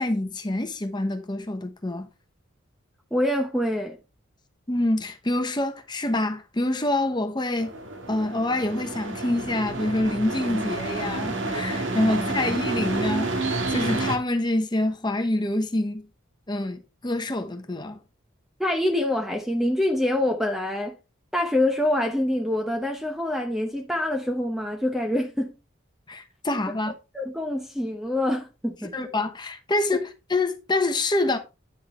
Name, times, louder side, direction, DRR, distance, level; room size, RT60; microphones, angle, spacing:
voice 1, 0.0-2.1 4.7-7.7 8.1-16.0 16.5-18.0 26.1-26.9 28.9-31.4, left 1 dB, 20° left, 1.0 m, -26 dB
voice 2, 3.1-4.0 18.6-21.0 21.3-25.5 27.1-28.9, left 1 dB, ahead, 0.8 m, -25 dB
sound 1, 7.6-14.2, right 2 dB, 70° right, 1.7 m, -29 dB
9.8 x 6.5 x 3.2 m
head